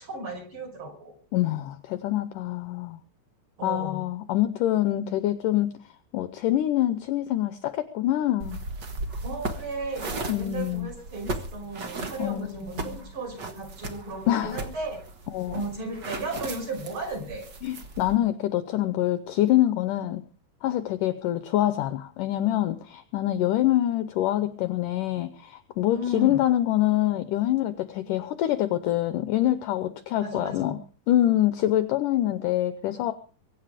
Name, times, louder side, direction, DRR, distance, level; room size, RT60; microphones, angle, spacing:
voice 1, 0.0-1.1 3.6-4.0 9.2-15.0 15.5-17.4 25.9-26.5 30.2-30.7, right 1 dB, 30° right, 2 dB, 5.8 m, -35 dB
voice 2, 1.3-3.0 3.6-5.8 6.1-8.6 10.3-11.0 12.2-13.0 14.3-14.6 15.3-15.6 17.6-20.2 20.6-30.8 31.1-33.1, left 13 dB, 75° left, 12 dB, 2.1 m, -25 dB
sound 1, 8.4-18.2, right 2 dB, 50° right, 1.3 m, -37 dB
23.5 x 9.7 x 5.0 m, 0.40 s
omnidirectional pair, 4.4 m